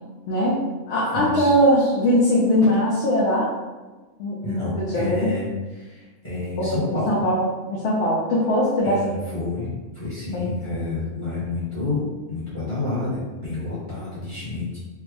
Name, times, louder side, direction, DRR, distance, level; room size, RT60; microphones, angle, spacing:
voice 1, 0.3-0.6 0.9-3.5 4.2-5.3 6.6-6.7 7.1-7.4 7.7-9.1 10.3-10.5, equal, 70° left, -6 dB, 0.9 m, -20 dB
voice 2, 1.1-1.6 4.4-7.2 8.8-14.8, left 3 dB, 25° left, -10 dB, 1.0 m, -29 dB
3.4 x 2.0 x 3.5 m, 1.2 s
omnidirectional pair, 1.2 m